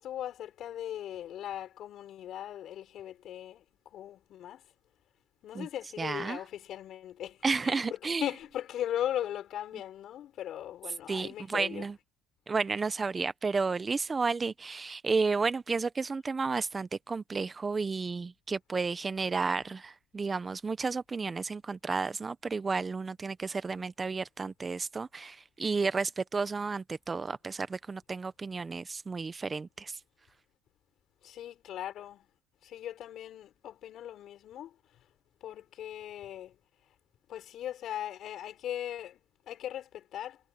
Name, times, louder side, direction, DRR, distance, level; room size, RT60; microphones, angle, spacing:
voice 1, 0.0-3.6 3.9-4.6 5.4-11.9 31.2-32.3 32.6-34.7 35.4-36.5 37.3-39.2 39.5-40.4, left 11 dB, 55° left, 6.0 m, -38 dB
voice 2, 6.0-6.4 7.4-8.3 11.1-12.0 12.5-30.0, right 4 dB, 20° right, 0.7 m, -32 dB
cardioid pair, 120°, 0 cm